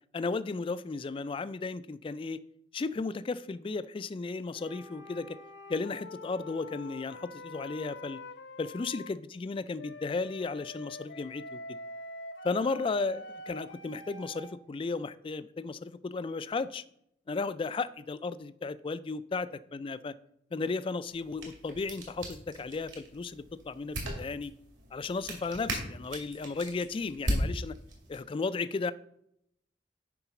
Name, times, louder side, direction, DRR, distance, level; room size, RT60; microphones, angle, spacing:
voice 1, 0.1-2.4 2.7-5.4 5.7-8.2 8.6-11.8 12.4-16.8 17.3-20.1 20.5-24.5 24.9-27.8 28.1-28.9, left 4 dB, 30° left, 15 dB, 0.3 m, -34 dB
sound 1, 4.5-9.1 9.8-14.5, left 1 dB, 70° left, 0.8 m, -46 dB
sound 2, 21.1-28.2, equal, 85° right, 2.7 m, -38 dB
9.8 x 3.9 x 5.8 m, 0.74 s
head